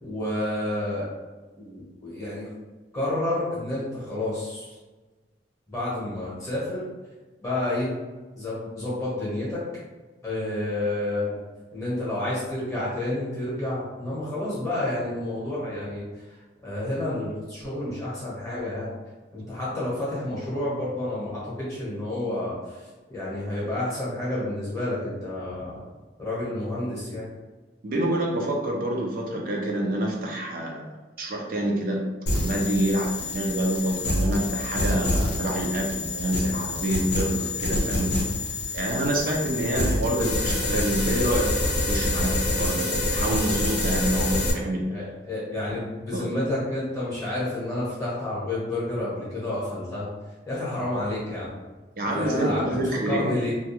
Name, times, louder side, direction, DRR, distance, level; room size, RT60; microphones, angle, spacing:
voice 1, 0.0-1.1 1.6-2.5 2.9-4.7 5.7-6.8 7.4-7.9 8.3-9.6 10.2-11.4 11.7-16.1 16.6-18.9 19.3-22.8 23.1-25.8 26.2-27.3 44.9-50.1 50.5-51.5 52.1-52.7 53.1-53.5, left 1 dB, 20° left, -8 dB, 0.8 m, -30 dB
voice 2, 27.8-30.9 31.2-32.0 32.3-38.2 38.7-44.9 46.1-46.3 52.0-53.3, right 1 dB, 50° right, -1 dB, 0.5 m, -27 dB
sound 1, 32.3-44.5, left 2 dB, 65° left, 0.6 m, -27 dB
2.3 x 2.2 x 2.8 m, 1.2 s
head